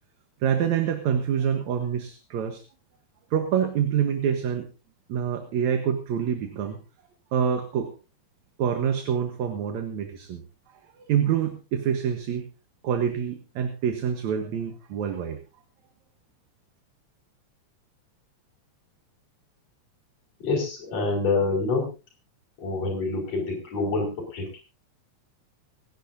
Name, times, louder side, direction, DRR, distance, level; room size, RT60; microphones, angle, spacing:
voice 1, 0.4-2.6 3.3-4.7 5.1-6.8 7.3-7.9 8.6-10.4 11.0-12.5 12.8-15.4, right 8 dB, 75° right, 6 dB, 2.6 m, -26 dB
voice 2, 20.4-21.9 22.6-24.6, left 3 dB, 60° left, -6 dB, 6.3 m, -26 dB
29.0 x 10.5 x 2.7 m, 0.31 s
omnidirectional pair, 3.3 m